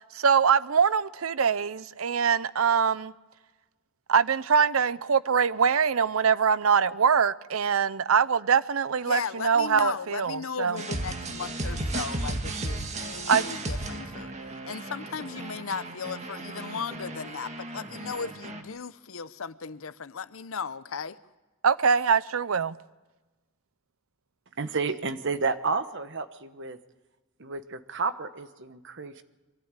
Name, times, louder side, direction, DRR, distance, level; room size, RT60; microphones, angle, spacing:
voice 1, 0.1-3.1 4.1-10.8 13.3-13.4 21.6-22.8, right 6 dB, 80° right, 0.6 m, -23 dB
voice 2, 9.0-14.3 14.6-21.2, left 6 dB, 75° left, 0.7 m, -36 dB
sound 1, 10.8-18.6, right 2 dB, 35° right, 1.7 m, -35 dB
voice 3, 24.6-26.8 27.4-29.2, right 4 dB, 60° right, 1.1 m, -31 dB
24.0 x 13.5 x 8.9 m
head